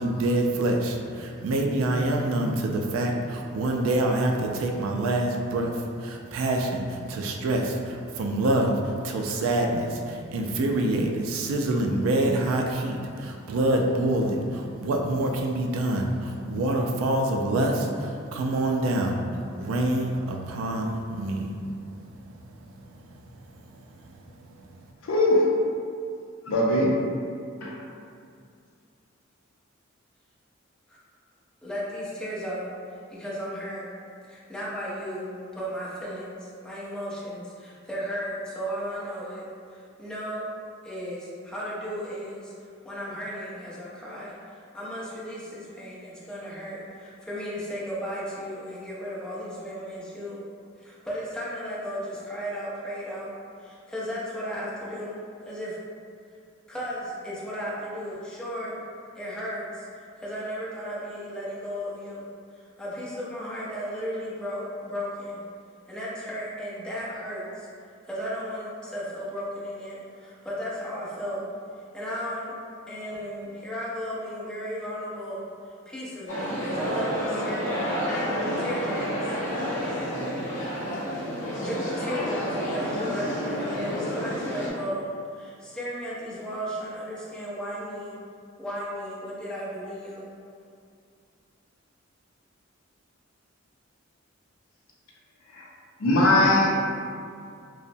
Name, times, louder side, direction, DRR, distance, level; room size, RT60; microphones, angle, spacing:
voice 1, 0.0-23.2 23.5-24.1 24.5-24.7, right 1 dB, 70° right, 2 dB, 0.3 m, -26 dB
voice 2, 25.0-25.5 26.5-27.0 27.6-27.8 95.5-95.7 96.0-96.7, left 1 dB, 80° left, -3 dB, 0.5 m, -20 dB
voice 3, 31.6-32.7 33.1-33.9 34.3-39.4 39.7-40.5 40.8-50.4 50.8-53.3 53.6-55.2 55.5-55.8 56.7-58.8 59.2-59.9 60.2-62.3 62.5-65.4 65.9-67.7 68.0-71.4 71.9-72.5 72.9-77.9 78.3-79.4 80.9-81.0 81.6-88.2 88.6-90.3, equal, 5° left, -8 dB, 0.5 m, -35 dB
sound 1, 76.3-84.7, equal, 40° left, 0.8 m, -29 dB
2.9 x 2.0 x 2.6 m, 2.4 s
head